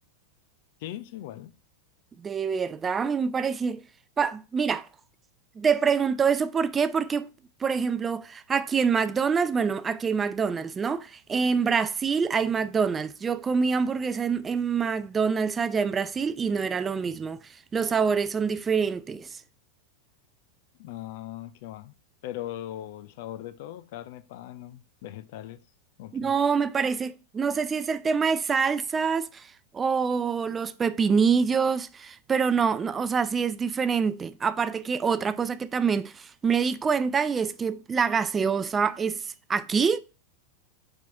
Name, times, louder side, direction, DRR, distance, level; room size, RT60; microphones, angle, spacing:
voice 1, 0.8-1.5 20.8-21.9 22.2-25.6 26.0-26.3, left 13 dB, 50° left, 0.5 m, -39 dB
voice 2, 2.2-3.8 4.2-4.9 5.6-7.3 7.6-19.4 26.1-40.0, right 6 dB, 20° right, 0.3 m, -26 dB
4.6 x 4.3 x 5.0 m
figure-of-eight pair, 90°, 0 cm